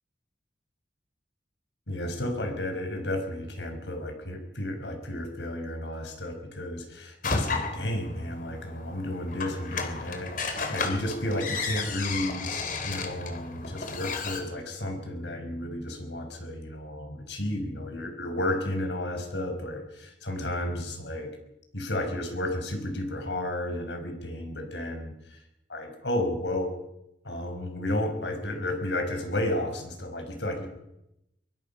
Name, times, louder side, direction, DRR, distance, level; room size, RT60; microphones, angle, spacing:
voice 1, 1.9-21.3 21.7-25.4 25.7-26.7 27.2-30.7, left 1 dB, 85° left, 5 dB, 5.6 m, -32 dB
sound 1, 7.2-14.4, left 4 dB, 50° left, 3.2 m, -33 dB
23.0 x 23.0 x 5.7 m, 0.86 s
head